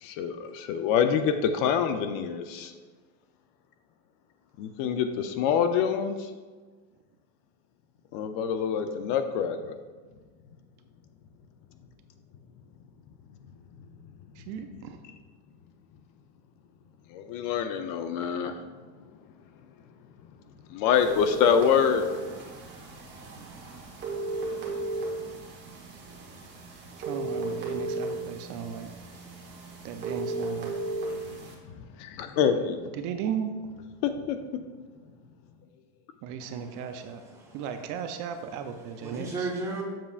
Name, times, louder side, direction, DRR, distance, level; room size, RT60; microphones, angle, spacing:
voice 1, 0.0-2.7 4.6-6.1 8.1-9.7 17.1-18.5 20.7-22.0 32.0-32.8 34.0-34.4, left 7 dB, 60° left, 8 dB, 0.6 m, -26 dB
voice 2, 14.4-15.0 27.0-28.9 29.8-30.9 32.9-33.5 36.2-37.2 37.5-39.5, right 8 dB, 55° right, 7 dB, 0.5 m, -36 dB
sound 1, 20.9-31.5, right 2 dB, 30° right, 1.3 m, -35 dB
voice 3, 36.4-37.6 39.0-39.8, right 3 dB, 10° right, -3 dB, 1.2 m, -36 dB
7.5 x 6.8 x 2.4 m, 1.4 s
cardioid pair, 165°, 37 cm